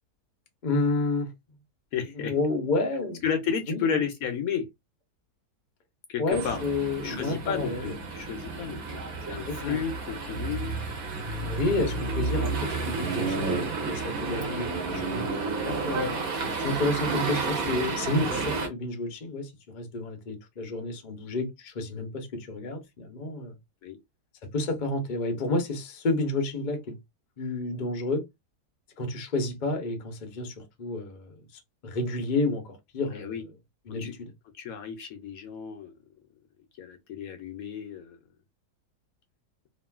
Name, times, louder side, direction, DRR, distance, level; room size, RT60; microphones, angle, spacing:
voice 1, 0.6-1.3 2.1-3.2 3.7-4.0 6.2-8.0 9.5-9.8 11.4-16.2 16.6-23.5 24.5-27.0 27.4-28.2 29.0-31.4 31.8-33.4 33.9-34.3, left 2 dB, 45° left, 0.6 m, -30 dB
voice 2, 1.9-2.3 3.2-4.7 6.1-6.6 7.0-10.7 14.9-15.3 16.6-16.7 23.8-24.0 33.1-33.4 34.0-34.1 34.5-35.9 36.8-38.2, left 7 dB, 70° left, 0.9 m, -32 dB
sound 1, 6.3-18.7, right 3 dB, 60° right, 1.3 m, -31 dB
3.0 x 2.6 x 2.3 m
omnidirectional pair, 1.8 m